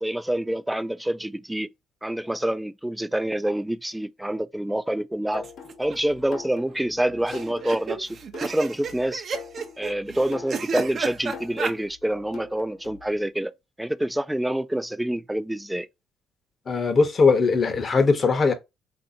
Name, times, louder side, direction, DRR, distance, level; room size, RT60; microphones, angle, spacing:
voice 1, 0.0-1.7 2.0-5.4 5.8-9.2 9.8-13.5 13.8-15.9, right 1 dB, 5° right, 0.3 m, -27 dB
sound 1, 5.3-13.1, left 6 dB, 65° left, 1.0 m, -43 dB
sound 2, 5.4-6.0 6.3-6.4 6.5-6.6 7.3-11.7, right 5 dB, 50° right, 0.6 m, -32 dB
voice 2, 16.7-18.5, left 4 dB, 40° left, 0.8 m, -20 dB
3.4 x 2.6 x 2.6 m
supercardioid pair, 75°, 0 cm